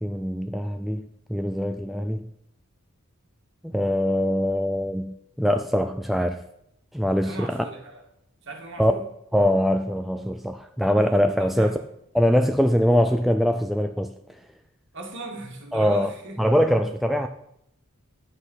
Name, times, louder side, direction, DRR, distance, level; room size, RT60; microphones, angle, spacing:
voice 1, 0.0-2.3 3.6-6.4 6.9-7.7 8.8-8.9 9.3-11.8 12.1-14.1 15.7-16.1 16.4-17.3, equal, ahead, 0.4 m, -23 dB
voice 2, 7.2-8.0 8.4-9.0 11.4-11.8 14.9-16.4, right 2 dB, 55° right, 2.4 m, -38 dB
10.5 x 8.4 x 5.6 m
head